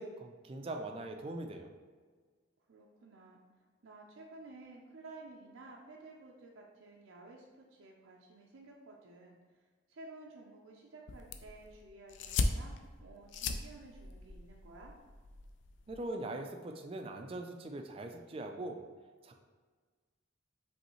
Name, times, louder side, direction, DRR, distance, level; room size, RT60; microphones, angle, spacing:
voice 1, 0.0-1.7 15.9-18.8 19.2-19.3, right 2 dB, 30° right, 4 dB, 0.4 m, -41 dB
voice 2, 2.7-14.9, right 2 dB, 75° right, -1 dB, 0.5 m, -54 dB
sound 1, 11.1-16.1, left 3 dB, 60° left, 0.4 m, -38 dB
5.3 x 3.2 x 3.1 m, 1.5 s
head